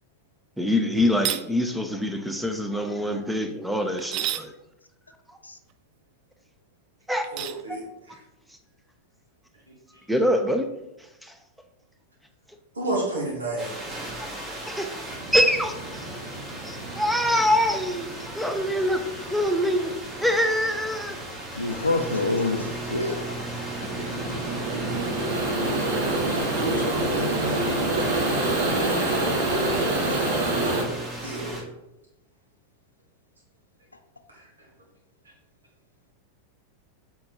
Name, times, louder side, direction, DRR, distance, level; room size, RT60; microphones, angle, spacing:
voice 1, 0.6-4.5 7.1-7.3 10.1-10.7 11.2-11.3 14.7-14.9 15.3-16.1 16.6-19.0 19.3-19.9 20.2-21.2, equal, 5° right, 6 dB, 0.7 m, -24 dB
sound 1, 1.1-1.5 4.0-4.5 7.2-7.6, right 13 dB, 40° right, 0.4 m, -29 dB
voice 2, 7.3-8.2 12.8-14.2 26.2-27.8 31.2-31.7 34.3-34.5, right 2 dB, 75° right, -2 dB, 2.0 m, -32 dB
sound 2, 13.6-31.6, right 1 dB, 20° right, 1.5 m, -36 dB
sound 3, 15.1-30.8, right 2 dB, 55° right, 1.4 m, -27 dB
voice 3, 21.5-23.3 24.0-24.2 29.8-30.3, left 3 dB, 80° left, 8 dB, 0.6 m, -28 dB
7.3 x 4.6 x 3.1 m, 0.92 s
figure-of-eight pair, 90°, 0 cm